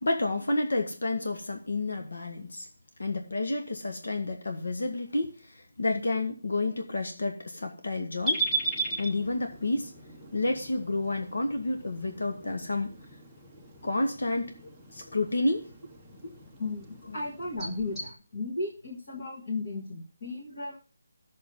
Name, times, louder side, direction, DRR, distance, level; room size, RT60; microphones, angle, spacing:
voice 1, 0.0-2.7 3.0-8.4 9.0-9.9 10.3-12.9 13.8-14.5 14.9-15.7 16.2-16.3, left 2 dB, 85° left, 1.7 m, -30 dB
sound 1, 8.2-18.1, right 2 dB, ahead, 0.8 m, -37 dB
voice 2, 16.6-20.8, left 3 dB, 35° left, 1.7 m, -35 dB
14.5 x 6.4 x 3.9 m
hypercardioid pair, 180°, 0 cm